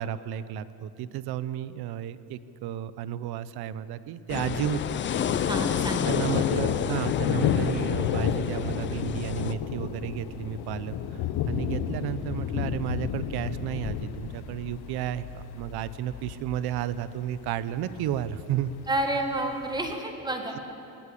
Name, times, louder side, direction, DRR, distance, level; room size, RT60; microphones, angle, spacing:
voice 1, 0.0-4.8 6.1-18.7, right 11 dB, 60° right, 15 dB, 0.9 m, -32 dB
Thunder, 4.3-19.9, left 8 dB, 65° left, 1.3 m, -32 dB
sound 1, 4.3-9.5, left 8 dB, 30° left, 0.5 m, -30 dB
voice 2, 5.5-6.1 18.9-20.6, right 1 dB, 10° right, 4 dB, 1.7 m, -30 dB
19.5 x 16.5 x 8.5 m, 2.7 s
cardioid pair, 165°, 42 cm